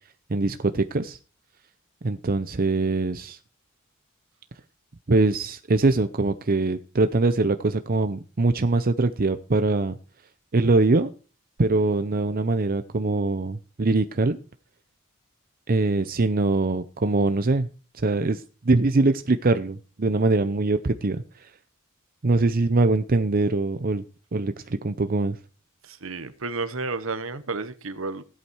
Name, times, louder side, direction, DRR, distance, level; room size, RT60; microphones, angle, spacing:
voice 1, 0.3-1.2 2.0-3.4 5.1-10.0 10.5-11.1 11.6-14.4 15.7-17.7 17.9-21.5 22.2-24.0 24.3-25.4, right 3 dB, 45° right, 0.6 m, -23 dB
voice 2, 25.8-28.2, right 3 dB, 70° right, 1.2 m, -31 dB
16.5 x 8.5 x 4.6 m
head